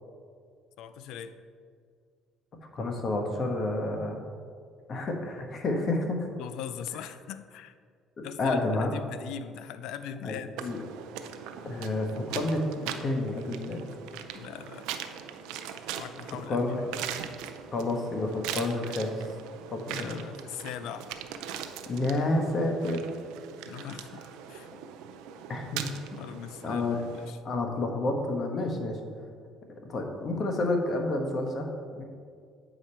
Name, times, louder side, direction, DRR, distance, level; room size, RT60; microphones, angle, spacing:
voice 1, 0.8-1.4 6.4-7.7 8.2-10.5 14.3-14.9 16.0-16.6 19.9-21.1 23.7-24.7 26.2-27.4, left 9 dB, 75° left, 12 dB, 0.4 m, -40 dB
voice 2, 2.7-4.2 4.9-6.3 8.2-8.9 10.2-10.8 11.6-13.8 16.5-16.9 17.7-19.1 19.7-20.2 21.9-23.0 23.8-23.9 25.5-25.9 26.1-26.2 26.6-27.0 27.4-29.0 29.7-31.7 32.0-32.1, left 2 dB, 45° left, 3 dB, 1.1 m, -30 dB
sound 1, 10.6-27.3, right 9 dB, 85° right, 0.4 m, -41 dB
8.2 x 5.0 x 4.3 m, 2.2 s
supercardioid pair, 90°, 0 cm